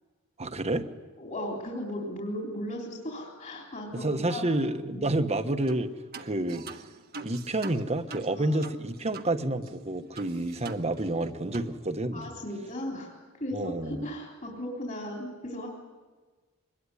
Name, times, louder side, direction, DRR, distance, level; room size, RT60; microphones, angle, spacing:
voice 1, 0.4-0.9 3.9-5.9 6.2-6.6 7.2-12.3 13.5-14.1, right 2 dB, 30° right, 8 dB, 1.3 m, -29 dB
voice 2, 1.2-4.4 8.4-8.5 12.1-15.7, left 1 dB, 35° left, -1 dB, 3.9 m, -36 dB
sound 1, 5.7-5.9 6.1-9.3 9.6-9.7 10.2-11.3 11.5-11.7, right 3 dB, 45° right, 1.4 m, -43 dB
24.5 x 21.0 x 10.0 m, 1.4 s
head